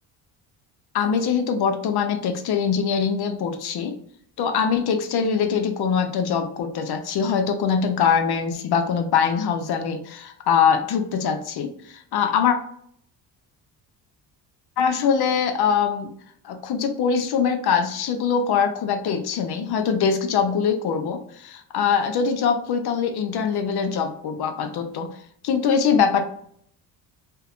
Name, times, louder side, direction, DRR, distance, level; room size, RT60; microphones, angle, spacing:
voice 1, 0.9-4.0 4.4-12.6 14.8-16.2 16.4-25.1 25.4-26.2, left 6 dB, 55° left, 7 dB, 0.6 m, -23 dB
2.5 x 2.1 x 2.4 m, 0.64 s
supercardioid pair, 70°, 49 cm